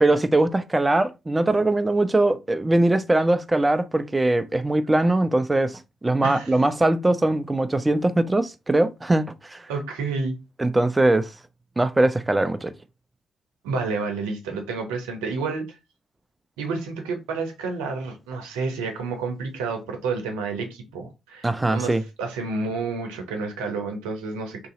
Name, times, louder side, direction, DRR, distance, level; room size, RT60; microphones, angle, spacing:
voice 1, 0.0-9.7 10.6-11.3 11.8-12.7 21.4-22.0, right 2 dB, 20° right, 0.5 m, -21 dB
voice 2, 6.2-6.6 9.7-10.4 13.6-15.7 16.6-24.7, right 4 dB, 80° right, 0.8 m, -30 dB
3.0 x 2.7 x 3.7 m
hypercardioid pair, 45°, 0 cm